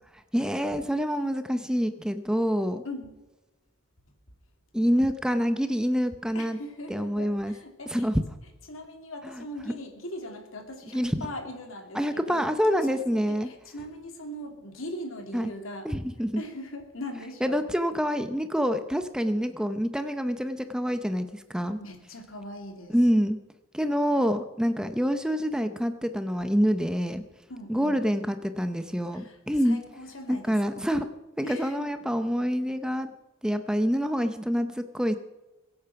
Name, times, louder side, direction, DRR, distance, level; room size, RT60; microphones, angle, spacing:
voice 1, 0.3-2.8 4.7-6.6 6.9-7.5 7.9-8.2 9.2-9.7 10.9-11.2 11.9-13.5 15.3-15.5 15.8-16.4 17.4-21.8 22.9-23.4 23.7-27.2 27.7-29.8 30.3-31.1 31.4-33.1 33.4-35.1, equal, 5° right, 9 dB, 0.6 m, -26 dB
voice 2, 2.8-3.2 6.3-8.1 8.7-12.4 12.9-15.9 16.4-17.6 21.8-23.0 27.5-28.0 29.1-30.9 31.4-31.9, left 1 dB, 75° left, 4 dB, 2.7 m, -40 dB
22.5 x 8.6 x 5.8 m, 1.1 s
head